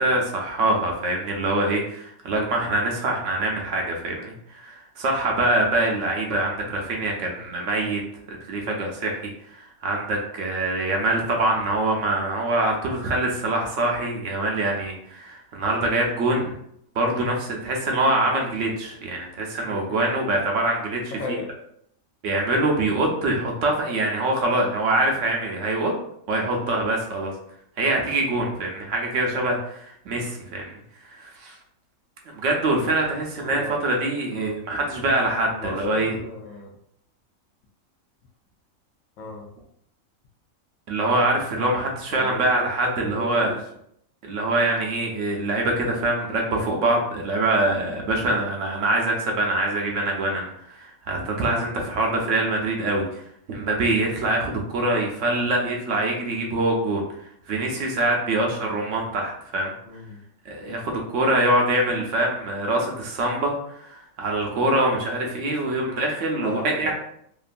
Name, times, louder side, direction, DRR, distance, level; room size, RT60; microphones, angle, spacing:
voice 1, 0.0-8.0 8.3-9.2 9.5-16.6 17.0-21.0 22.2-25.9 26.3-27.3 27.8-31.6 32.3-36.1 40.9-43.5 44.2-53.2 53.5-57.0 57.5-59.7 60.5-66.9, right 2 dB, 70° right, 1 dB, 0.9 m, -24 dB
voice 2, 19.7-20.0 21.1-21.5 33.4-33.8 34.3-34.6 35.5-36.7 39.2-39.5 42.1-43.6 59.9-60.2 65.5-65.9 66.4-66.9, left 2 dB, 70° left, 2 dB, 0.9 m, -36 dB
2.9 x 2.4 x 2.5 m, 0.71 s
omnidirectional pair, 1.4 m